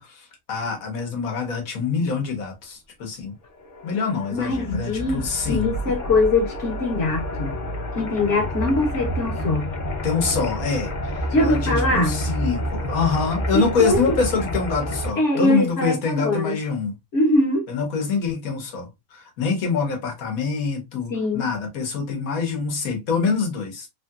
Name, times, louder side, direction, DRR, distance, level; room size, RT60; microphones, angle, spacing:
voice 1, 0.0-3.3 3.8-6.0 10.0-16.9 17.7-23.9, left 5 dB, 85° left, 1.4 m, -25 dB
sound 1, 3.5-15.1, equal, 45° left, 0.7 m, -29 dB
voice 2, 4.3-7.5 7.9-9.7 11.3-12.2 13.5-14.0 15.2-16.6 17.1-17.6 21.1-21.5, left 2 dB, 60° left, 1.2 m, -22 dB
3.1 x 2.7 x 2.2 m
omnidirectional pair, 1.4 m